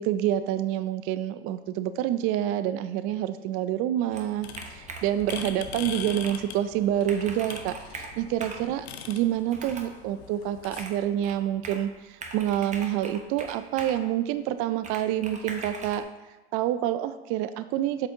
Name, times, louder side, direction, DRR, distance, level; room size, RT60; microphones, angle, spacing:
voice 1, 0.0-16.0 16.5-18.1, right 11 dB, 45° right, 12 dB, 0.4 m, -28 dB
Computer keyboard, 4.1-5.6 6.1-6.4 6.8-6.9 7.0-8.7 9.5-10.0 10.8-11.9 12.2-14.0 14.8-16.0, right 3 dB, 25° right, 1.0 m, -41 dB
sound 1, 4.4-10.9, left 8 dB, 85° left, 0.7 m, -42 dB
8.1 x 5.4 x 2.7 m, 1.2 s
supercardioid pair, 105°, 31 cm